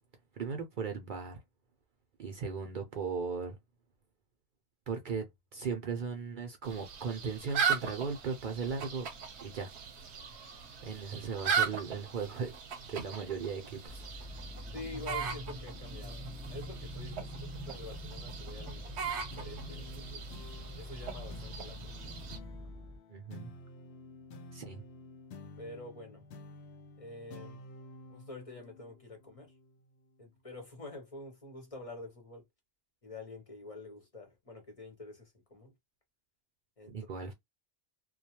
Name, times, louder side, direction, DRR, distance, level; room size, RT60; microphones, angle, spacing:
voice 1, 0.3-1.4 2.2-3.6 4.9-5.3 5.5-9.1 9.4-9.7 10.8-12.5 12.8-14.0 23.1-23.5 24.5-24.8 36.9-37.3, right 5 dB, 55° right, 0.6 m, -37 dB
sound 1, 6.6-22.4, right 6 dB, 80° right, 0.9 m, -38 dB
sound 2, 13.9-23.0, equal, 10° right, 0.6 m, -44 dB
voice 2, 14.7-20.3 20.8-21.9 25.6-26.2 27.0-27.6 28.1-29.5 30.2-32.4 33.0-35.7 36.8-36.9, left 2 dB, 35° left, 0.8 m, -47 dB
sound 3, 19.3-30.1, left 2 dB, 75° left, 0.8 m, -51 dB
2.3 x 2.2 x 2.8 m
omnidirectional pair, 1.1 m